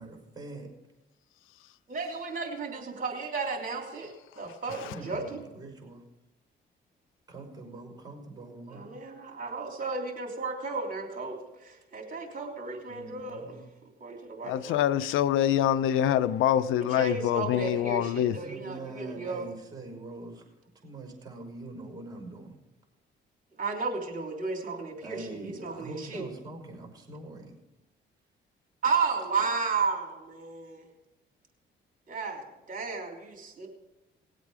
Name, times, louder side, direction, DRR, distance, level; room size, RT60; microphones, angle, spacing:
voice 1, 0.0-0.7 4.7-6.1 7.3-8.9 12.9-13.7 18.2-20.5 20.8-22.6 25.0-27.6, right 2 dB, 20° right, 5.6 m, -43 dB
voice 2, 1.9-5.2 8.7-13.6 14.0-14.8 16.7-19.4 23.6-26.3 28.8-30.9 32.1-33.7, right 4 dB, 45° right, 3.2 m, -33 dB
voice 3, 14.4-18.4, left 11 dB, 90° left, 0.5 m, -25 dB
19.0 x 8.2 x 4.8 m
cardioid pair, 90°, 20 cm